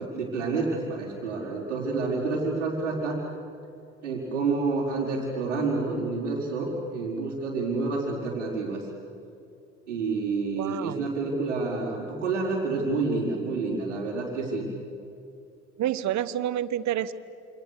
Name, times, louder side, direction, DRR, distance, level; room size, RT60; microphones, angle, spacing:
voice 1, 0.0-3.2 4.0-8.8 9.9-14.7, right 3 dB, 90° right, -7 dB, 4.9 m, -28 dB
voice 2, 10.6-11.1 15.8-17.1, right 11 dB, 50° right, 15 dB, 1.3 m, -28 dB
28.5 x 27.5 x 6.7 m, 2.6 s
hypercardioid pair, 65°, 35 cm